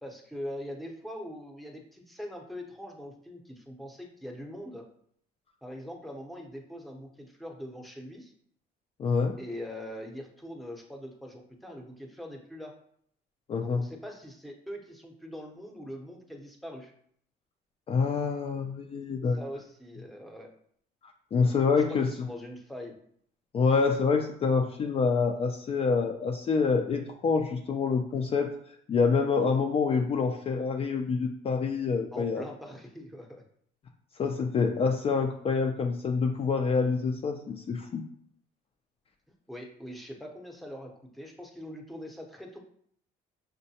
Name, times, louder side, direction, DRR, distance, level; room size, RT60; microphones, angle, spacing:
voice 1, 0.0-4.8 5.6-8.3 9.4-12.7 13.6-16.9 19.3-20.5 21.7-22.9 32.1-33.4 39.5-42.6, equal, ahead, 1 dB, 0.7 m, -42 dB
voice 2, 9.0-9.3 13.5-13.8 17.9-19.4 21.3-22.1 23.5-28.5 28.9-32.4 34.2-38.0, left 5 dB, 35° left, 3 dB, 0.4 m, -26 dB
6.3 x 2.1 x 2.7 m, 0.65 s
cardioid pair, 110°, 17 cm